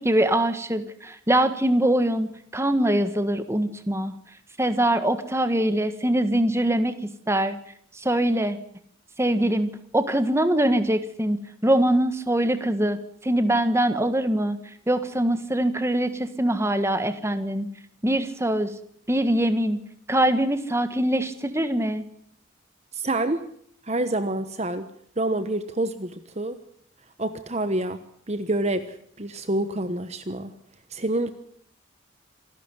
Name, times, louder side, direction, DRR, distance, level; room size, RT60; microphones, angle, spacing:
voice 1, 0.0-4.1 4.6-7.0 7.3-7.6 7.9-8.6 9.2-11.4 11.6-13.0 13.2-14.6 14.9-17.7 18.0-18.7 19.1-19.8 20.1-22.1, right 1 dB, 15° right, 10 dB, 1.4 m, -23 dB
voice 2, 22.9-23.4 23.8-24.9 25.2-26.6 27.2-28.0 28.3-30.5 30.9-31.3, right 1 dB, 30° right, 11 dB, 1.1 m, -27 dB
27.0 x 12.0 x 9.8 m, 0.66 s
head